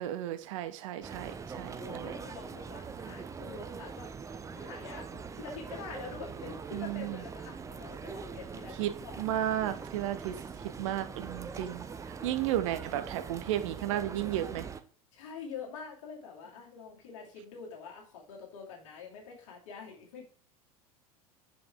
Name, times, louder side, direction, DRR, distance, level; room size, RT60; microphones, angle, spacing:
voice 1, 0.0-2.1 6.7-7.2 8.8-8.9 9.2-10.3 10.8-11.8 12.2-14.7, right 12 dB, 55° right, 11 dB, 0.7 m, -33 dB
sound 1, 1.0-14.8, right 5 dB, 15° right, 0.6 m, -43 dB
voice 2, 1.7-4.1 4.5-9.4 12.3-12.4 15.1-20.2, left 5 dB, 60° left, -1 dB, 2.5 m, -46 dB
6.2 x 6.0 x 3.4 m, 0.42 s
figure-of-eight pair, 75°, 19 cm